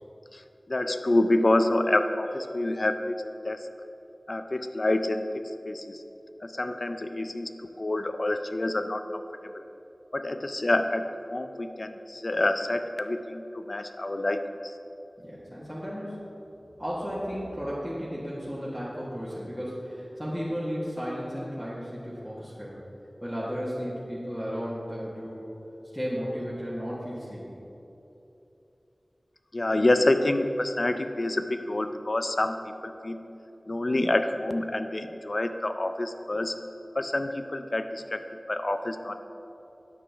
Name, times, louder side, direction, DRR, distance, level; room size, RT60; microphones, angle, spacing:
voice 1, 0.7-3.7 4.3-5.2 5.7-6.0 6.4-7.5 7.8-9.2 10.1-11.0 11.3-14.4 29.5-32.6 32.8-33.2 33.7-36.6 37.0-38.2 38.5-39.1, left 1 dB, 55° left, 8 dB, 0.4 m, -27 dB
voice 2, 15.2-16.4 16.8-22.8 23.2-25.5 25.9-27.6, equal, 5° left, -9 dB, 1.4 m, -34 dB
9.4 x 6.0 x 3.4 m, 3.0 s
wide cardioid pair, 40°, 0 cm